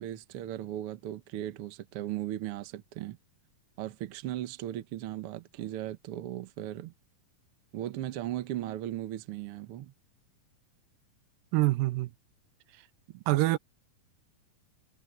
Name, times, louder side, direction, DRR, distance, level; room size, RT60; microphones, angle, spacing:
voice 1, 0.0-3.2 3.8-6.9 7.7-9.9 13.1-13.2, right 13 dB, 70° right, 1.4 m, -37 dB
voice 2, 11.5-12.1 13.3-13.6, right 19 dB, 90° right, 2.4 m, -25 dB
omnidirectional pair, 4.0 m